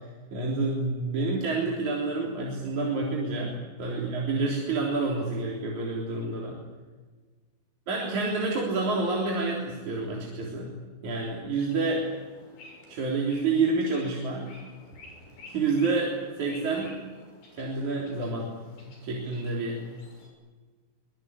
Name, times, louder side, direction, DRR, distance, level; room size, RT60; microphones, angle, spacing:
voice 1, 0.3-6.6 7.9-10.7 11.0-12.1 12.9-14.5 15.5-17.0 17.5-18.5 18.8-19.8, right 3 dB, 45° right, -2 dB, 4.9 m, -28 dB
sound 1, 11.6-20.3, left 2 dB, 55° left, 8.4 m, -51 dB
25.0 x 22.0 x 9.9 m, 1.4 s
omnidirectional pair, 5.2 m